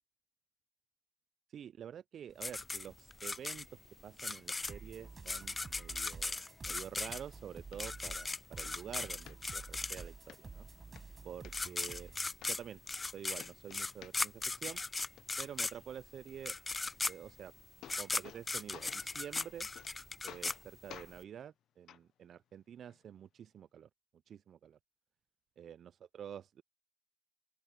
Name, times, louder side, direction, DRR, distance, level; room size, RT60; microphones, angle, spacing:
voice 1, 1.5-3.7 4.0-10.7 11.2-12.1 12.4-12.8 13.1-14.8 15.4-16.5 17.1-17.5 18.0-19.7 20.2-23.9 24.3-24.8 25.6-26.6, right 9 dB, 65° right, 0.4 m, -48 dB
sound 1, 2.4-10.3 11.2-11.3 11.5-21.2, left 3 dB, 30° left, 0.6 m, -38 dB
sound 2, 4.7-12.3, right 4 dB, 40° right, 4.8 m, -51 dB
sound 3, 6.7-6.8 7.3-7.4 7.7-7.8 8.3-8.7 9.3-9.8 10.3-10.4 10.8-11.5 12.1-12.2 12.4-13.1 13.4-14.4 14.7-15.2 17.3-17.4 17.6-18.4 18.7-19.1 19.4-19.9 20.3-20.6 20.9-21.1 21.9-22.0 22.9-23.0, left 11 dB, 70° left, 0.6 m, -52 dB
open air
hypercardioid pair, 45°, 0 cm